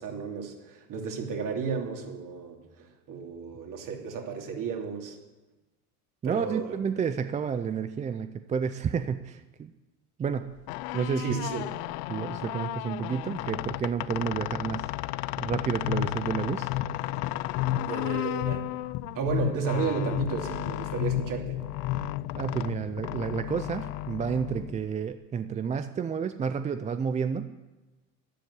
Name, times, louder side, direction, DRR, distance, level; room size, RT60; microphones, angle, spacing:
voice 1, 0.0-5.2 6.2-6.8 11.2-11.7 17.8-18.6 19.1-21.6, right 6 dB, 45° right, 2 dB, 2.9 m, -33 dB
voice 2, 6.2-9.7 10.2-10.5 10.9-11.4 12.1-14.8 15.4-16.7 22.3-27.5, right 6 dB, 15° right, 10 dB, 0.4 m, -30 dB
sound 1, 10.5-25.1, left 18 dB, 75° left, 0.6 m, -35 dB
sound 2, 15.5-22.4, left 12 dB, 55° left, 0.9 m, -32 dB
12.0 x 10.5 x 8.2 m, 1.1 s
supercardioid pair, 115°, 45 cm